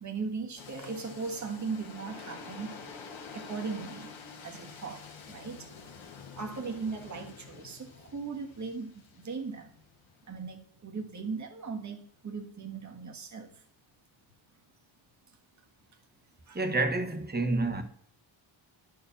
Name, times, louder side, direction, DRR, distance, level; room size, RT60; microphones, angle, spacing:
voice 1, 0.0-2.8 3.3-4.1 4.4-5.7 6.4-9.8 10.3-13.5 16.5-16.6, right 4 dB, 35° right, 1.5 m, -38 dB
sound 1, 0.6-10.4, left 5 dB, 80° left, 1.5 m, -48 dB
voice 2, 16.5-17.8, right 2 dB, 20° right, 1.3 m, -28 dB
10.0 x 4.9 x 7.0 m
cardioid pair, 100°, 46 cm